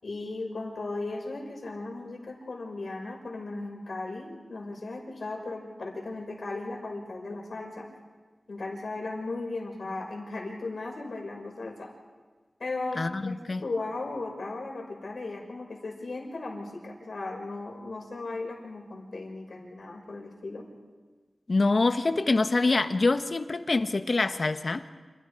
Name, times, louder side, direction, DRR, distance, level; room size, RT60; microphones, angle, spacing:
voice 1, 0.0-7.9 8.5-11.9 12.6-20.6, left 2 dB, 75° left, 0 dB, 6.2 m, -36 dB
voice 2, 13.0-13.6 21.5-24.8, left 3 dB, 60° left, 9 dB, 1.4 m, -25 dB
30.0 x 29.0 x 5.0 m, 1.4 s
wide cardioid pair, 80°, 0 cm